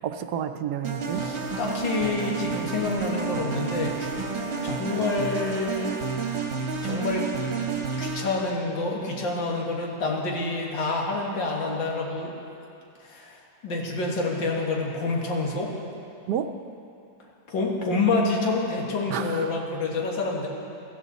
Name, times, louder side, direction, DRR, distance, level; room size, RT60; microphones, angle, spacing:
voice 1, 0.0-1.3 16.3-16.5 19.1-19.5, right 9 dB, 70° right, 8 dB, 1.1 m, -30 dB
sound 1, 0.8-8.5, right 5 dB, 45° right, 1.2 m, -30 dB
voice 2, 1.1-4.1 4.6-6.0 6.8-7.3 8.0-12.4 13.0-15.7 17.5-20.5, left 3 dB, 85° left, -1 dB, 2.4 m, -28 dB
16.0 x 14.5 x 4.1 m, 2.7 s
omnidirectional pair, 2.0 m